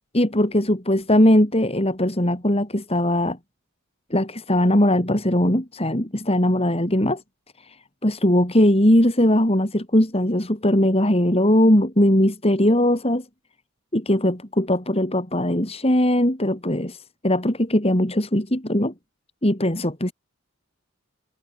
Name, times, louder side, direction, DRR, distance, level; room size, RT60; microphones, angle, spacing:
voice 1, 0.1-3.4 4.1-7.2 7.6-13.3 13.9-18.9 19.4-20.1, left 1 dB, 25° left, 3.7 m, -20 dB
head